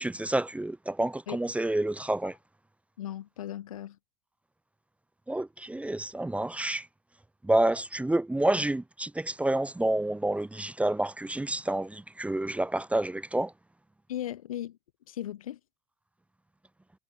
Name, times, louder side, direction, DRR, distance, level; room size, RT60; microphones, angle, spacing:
voice 1, 0.0-2.4 5.3-6.9 7.4-13.5, right 1 dB, 5° right, 1.0 m, -29 dB
voice 2, 3.0-4.0 14.1-14.8 15.1-15.6, left 12 dB, 85° left, 2.0 m, -37 dB
hypercardioid pair, 80°, 17 cm